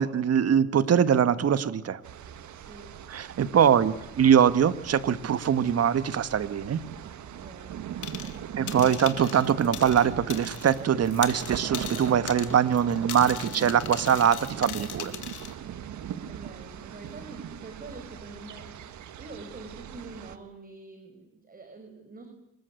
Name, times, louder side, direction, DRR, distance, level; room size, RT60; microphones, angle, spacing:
voice 1, 0.0-2.0 3.1-6.8 8.6-15.1, right 8 dB, 55° right, 13 dB, 1.6 m, -23 dB
sound 1, 2.0-20.4, right 9 dB, 70° right, 1.7 m, -40 dB
voice 2, 2.5-3.0 7.3-8.6 15.0-15.2 16.3-18.7 19.2-22.3, right 3 dB, 30° right, 5 dB, 5.1 m, -46 dB
sound 2, 8.0-8.4 8.7-10.8 11.0-15.5, left 11 dB, 80° left, 2.7 m, -39 dB
26.0 x 21.5 x 8.4 m, 0.91 s
cardioid pair, 90°, 30 cm